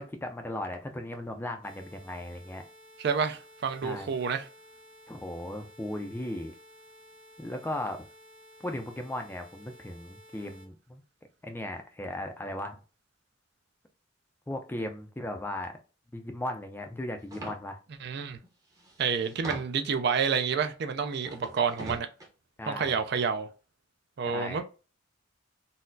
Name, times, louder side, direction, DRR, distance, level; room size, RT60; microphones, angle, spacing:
voice 1, 0.0-2.6 3.8-4.1 5.1-6.5 7.4-8.0 8.6-11.0 11.4-12.8 14.5-15.7 16.1-17.8 22.6-23.0 24.3-24.6, left 1 dB, 10° left, 0.3 m, -37 dB
sound 1, 1.6-10.7, equal, 90° right, 1.7 m, -54 dB
voice 2, 3.0-4.5 18.0-18.4 19.0-22.1 22.7-23.5 24.2-24.6, right 6 dB, 55° right, 0.4 m, -29 dB
sound 2, 17.3-17.6 18.4-18.5 18.8-19.9 21.2-22.3, right 1 dB, 15° right, 0.7 m, -41 dB
4.0 x 2.0 x 2.6 m
head